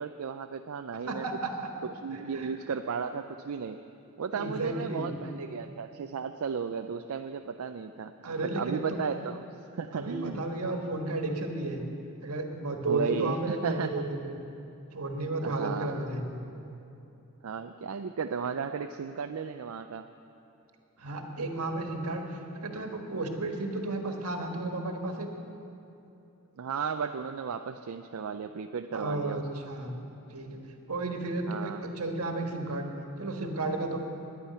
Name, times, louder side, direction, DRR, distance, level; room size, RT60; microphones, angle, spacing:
voice 1, 0.0-1.3 2.0-3.8 4.2-8.1 8.6-9.5 9.7-10.4 12.9-14.0 15.4-16.1 17.4-20.1 26.6-29.4 31.5-31.9, right 6 dB, 70° right, 7 dB, 0.4 m, -34 dB
voice 2, 1.1-1.7 2.1-2.5 4.3-5.1 8.2-9.0 9.9-11.8 12.2-14.3 14.9-16.4 21.0-25.3 28.9-30.0 30.3-30.6 30.9-32.9 33.2-34.0, right 2 dB, 85° right, 3 dB, 1.5 m, -33 dB
10.5 x 9.9 x 9.4 m, 2.9 s
head